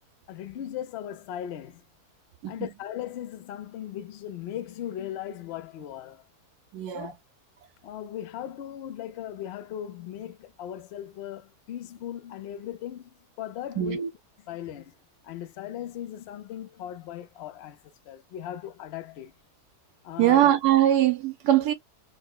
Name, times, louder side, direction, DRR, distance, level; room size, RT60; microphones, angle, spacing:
voice 1, 0.3-1.8 2.5-6.2 6.9-7.2 7.8-14.0 14.5-15.0 15.2-17.8 18.1-19.3 20.0-20.4, left 11 dB, 70° left, 0.6 m, -38 dB
voice 2, 6.7-7.1 13.8-14.1 20.2-21.7, right 12 dB, 85° right, 1.2 m, -22 dB
4.3 x 2.0 x 2.2 m
omnidirectional pair, 1.6 m